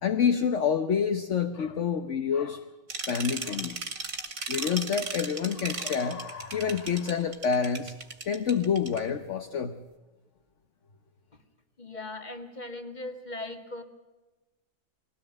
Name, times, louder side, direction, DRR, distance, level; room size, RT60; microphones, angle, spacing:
voice 1, 0.0-2.6 3.1-3.8 4.5-7.9 8.2-9.8, left 7 dB, 55° left, 7 dB, 1.3 m, -28 dB
sound 1, 2.9-9.0, right 3 dB, 65° right, 2.8 m, -36 dB
voice 2, 11.8-13.8, left 2 dB, 30° left, 7 dB, 2.1 m, -39 dB
21.5 x 18.0 x 7.5 m, 1.1 s
omnidirectional pair, 1.6 m